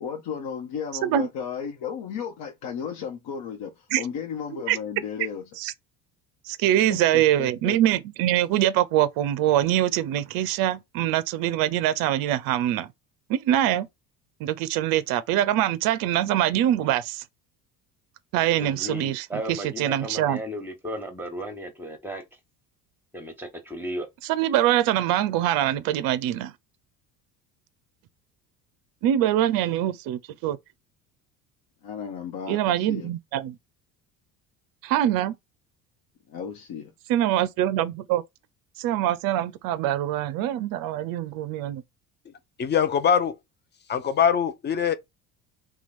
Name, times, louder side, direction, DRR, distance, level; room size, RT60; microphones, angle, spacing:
voice 1, 0.0-5.4 6.9-7.8 31.8-33.1 36.3-36.9, left 7 dB, 55° left, 1.0 m, -34 dB
voice 2, 6.5-12.9 13.3-13.9 14.4-17.2 18.3-20.4 24.3-26.5 29.0-30.6 32.5-33.5 34.8-35.4 37.1-38.2 38.8-41.8, right 12 dB, 50° right, 0.5 m, -24 dB
voice 3, 18.6-22.2 23.1-24.1, equal, 5° right, 1.2 m, -35 dB
voice 4, 42.6-43.4 43.9-44.9, left 8 dB, 25° left, 0.5 m, -22 dB
2.9 x 2.3 x 4.2 m
hypercardioid pair, 65°, 45 cm